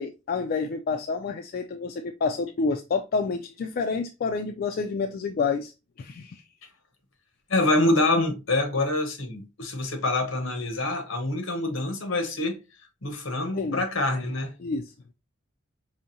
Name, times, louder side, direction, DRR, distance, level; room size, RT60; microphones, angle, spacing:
voice 1, 0.0-5.7 6.0-6.4 13.5-13.8 14.6-14.9, left 4 dB, 45° left, 0.3 m, -28 dB
voice 2, 7.5-12.6 13.0-14.5, left 2 dB, 75° left, 1.1 m, -26 dB
4.9 x 2.6 x 2.7 m
head